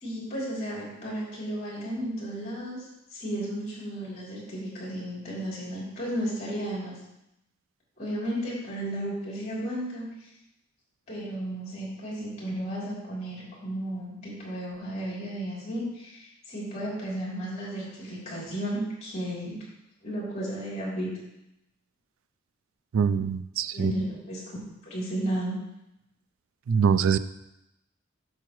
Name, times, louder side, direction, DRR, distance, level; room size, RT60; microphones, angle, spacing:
voice 1, 0.0-7.0 8.0-10.1 11.1-19.6 20.0-21.1 23.7-24.6 24.8-25.6, right 1 dB, 35° left, -6 dB, 3.1 m, -33 dB
voice 2, 22.9-23.9 26.7-27.2, right 7 dB, 75° right, 14 dB, 0.4 m, -23 dB
8.2 x 6.9 x 3.1 m, 0.86 s
head